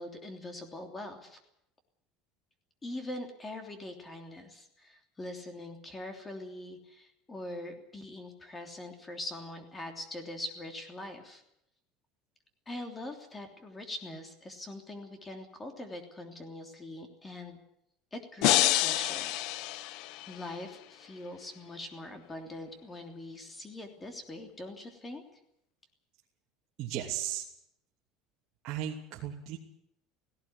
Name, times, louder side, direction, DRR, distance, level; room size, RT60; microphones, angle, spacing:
voice 1, 0.0-1.4 2.8-11.4 12.7-17.6 18.1-19.3 20.3-25.2, left 1 dB, 15° left, 5 dB, 3.2 m, -42 dB
sound 1, 18.4-20.6, left 16 dB, 60° left, 0.7 m, -28 dB
voice 2, 26.8-27.5 28.6-29.6, right 11 dB, 45° right, -4 dB, 3.0 m, -35 dB
17.5 x 17.5 x 9.8 m, 0.77 s
cardioid pair, 155°, 0 cm